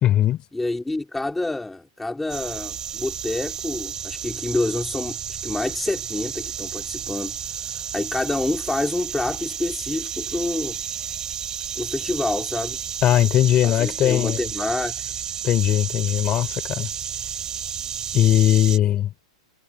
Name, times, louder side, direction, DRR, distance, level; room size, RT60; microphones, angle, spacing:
voice 1, 0.0-0.4 13.0-14.4 15.4-16.9 18.1-19.1, left 12 dB, 25° left, 3.3 m, -19 dB
voice 2, 0.5-5.2 5.4-10.8 11.7-12.8 13.6-15.0, left 2 dB, 5° left, 3.0 m, -28 dB
sound 1, 2.3-18.8, right 8 dB, 15° right, 5.9 m, -32 dB
supercardioid pair, 160°, 4 cm